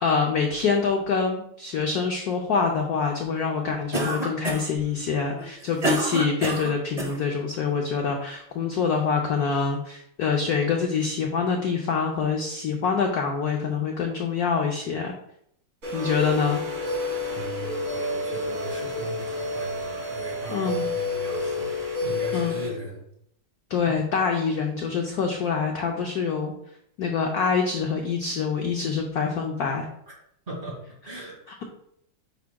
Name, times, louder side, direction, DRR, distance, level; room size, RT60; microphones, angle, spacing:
voice 1, 0.0-15.1 15.9-16.6 20.5-20.8 22.3-22.6 23.7-26.5 27.0-29.9, left 5 dB, 70° left, 2 dB, 0.9 m, -25 dB
Cough, 3.9-4.8 5.4-7.2, right 1 dB, 50° right, 0.4 m, -27 dB
sound 1, 15.8-22.7, left 2 dB, 75° right, 3.5 m, -29 dB
voice 2, 17.3-23.0 30.5-30.8 31.0-31.4, right 2 dB, 25° right, -4 dB, 2.5 m, -38 dB
9.3 x 4.8 x 2.2 m, 0.74 s
omnidirectional pair, 2.3 m